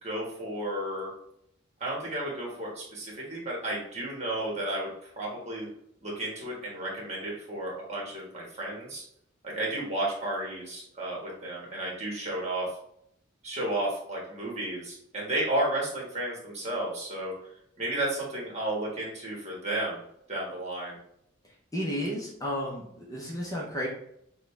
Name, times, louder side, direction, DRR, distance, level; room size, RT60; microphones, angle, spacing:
voice 1, 0.0-1.1 1.8-4.9 5.2-5.7 6.0-9.0 9.4-12.7 13.4-17.3 17.8-20.0 20.3-20.9, right 1 dB, 35° right, -3 dB, 1.5 m, -32 dB
voice 2, 21.7-23.9, equal, 15° left, -3 dB, 0.7 m, -32 dB
6.3 x 2.3 x 3.2 m, 0.73 s
head